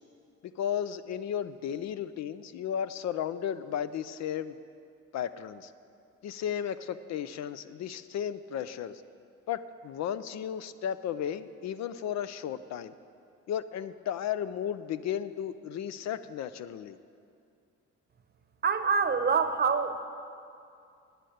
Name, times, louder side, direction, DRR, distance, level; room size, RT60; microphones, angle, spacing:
voice 1, 0.6-4.6 5.1-5.7 6.2-9.0 9.5-12.9 13.5-17.0, left 9 dB, 65° left, 14 dB, 0.5 m, -34 dB
voice 2, 18.6-20.0, right 5 dB, 35° right, 8 dB, 0.8 m, -26 dB
10.0 x 6.6 x 9.1 m, 2.4 s
cardioid pair, 90°, 30 cm